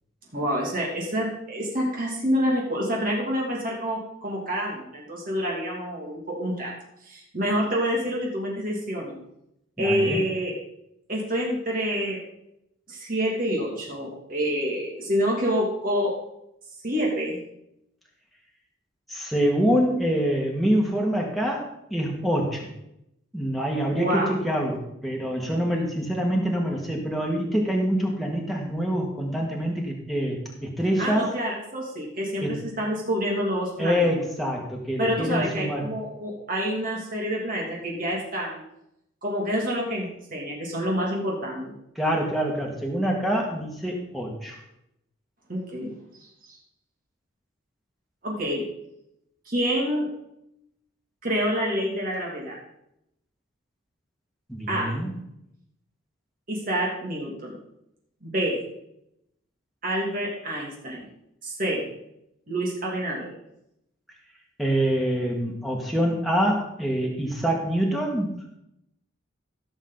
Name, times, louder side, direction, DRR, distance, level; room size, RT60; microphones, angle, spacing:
voice 1, 0.3-6.7 7.0-9.2 9.8-10.5 11.1-12.2 12.9-16.1 16.8-17.4 23.9-24.3 31.0-34.1 35.0-38.6 39.2-41.7 45.5-46.0 46.5-46.6 48.2-48.7 49.5-50.1 51.2-52.6 54.7-55.0 56.5-57.6 58.2-58.6 59.8-61.0 61.4-61.9 62.5-63.3, equal, 45° right, -2 dB, 2.6 m, -27 dB
voice 2, 9.8-10.2 19.1-22.7 23.3-31.3 32.4-32.7 33.8-35.9 42.0-44.6 54.5-55.1 64.6-68.4, equal, ahead, -2 dB, 2.0 m, -25 dB
16.5 x 7.3 x 4.1 m, 0.81 s
head